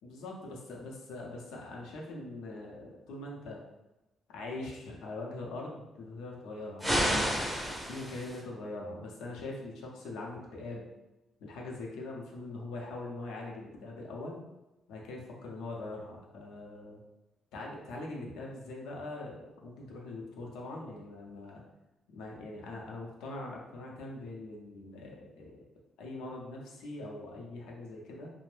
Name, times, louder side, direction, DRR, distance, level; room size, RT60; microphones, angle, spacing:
voice 1, 0.0-3.6 4.3-7.3 7.9-10.9 11.4-14.4 14.9-17.0 17.5-21.6 22.1-25.6 26.0-28.3, left 2 dB, 90° left, -2 dB, 0.6 m, -42 dB
sound 1, 6.8-8.4, equal, 5° right, 0.5 m, -30 dB
2.5 x 2.0 x 3.2 m, 0.98 s
cardioid pair, 90°, 0 cm